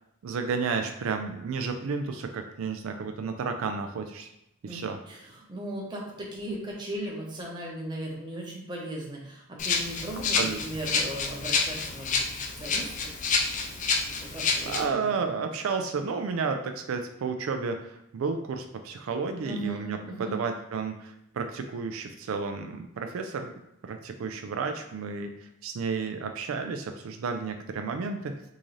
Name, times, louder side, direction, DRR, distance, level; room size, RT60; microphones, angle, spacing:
voice 1, 0.2-4.3 4.6-5.0 10.3-10.6 14.2-14.4 14.6-23.5 23.8-25.3 25.6-28.3, right 5 dB, 80° right, 6 dB, 0.4 m, -32 dB
voice 2, 4.6-12.3 12.6-13.1 14.0-15.3 19.4-20.4, right 1 dB, 20° right, -2 dB, 0.7 m, -37 dB
Rattle (instrument), 9.6-14.8, left 4 dB, 35° left, 0.4 m, -28 dB
3.7 x 2.6 x 3.1 m, 0.82 s
head